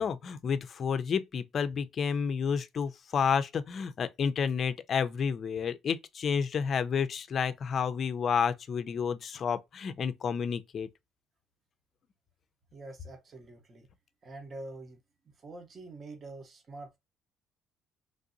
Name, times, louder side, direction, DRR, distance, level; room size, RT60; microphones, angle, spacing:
voice 1, 0.0-10.9, left 6 dB, 45° left, 0.4 m, -30 dB
voice 2, 12.7-13.9 14.2-15.0 15.4-17.0, right 2 dB, 40° right, 0.9 m, -45 dB
3.2 x 2.6 x 2.5 m
cardioid pair, 100°, 0 cm